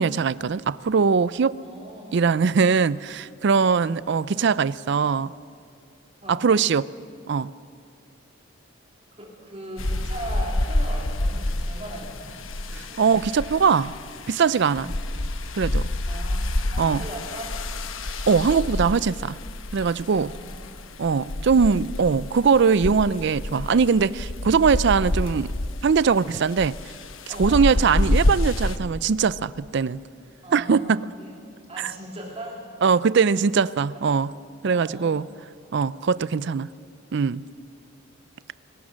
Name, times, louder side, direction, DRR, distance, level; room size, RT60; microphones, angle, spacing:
voice 1, 0.0-1.5 2.1-5.3 6.3-6.9 7.3-7.5 13.0-13.9 14.3-14.9 15.5-15.9 16.8-17.0 18.3-19.4 19.7-20.3 21.0-25.5 25.8-26.8 27.3-30.0 30.5-31.0 31.8-31.9 32.8-34.3 34.6-35.3 35.7-36.7 37.1-37.4, right 5 dB, 60° right, 18 dB, 0.4 m, -21 dB
voice 2, 1.6-2.2 6.2-6.5 9.2-12.4 12.7-13.0 14.7-15.0 16.1-16.4 16.7-17.5 20.3-20.8 21.0-21.3 27.3-27.8 30.4-31.3 31.7-32.6 34.7-35.2, right 1 dB, 30° right, -2 dB, 3.5 m, -39 dB
sound 1, 9.8-28.8, left 1 dB, 80° left, 1.1 m, -28 dB
24.5 x 19.5 x 6.4 m, 2.3 s
head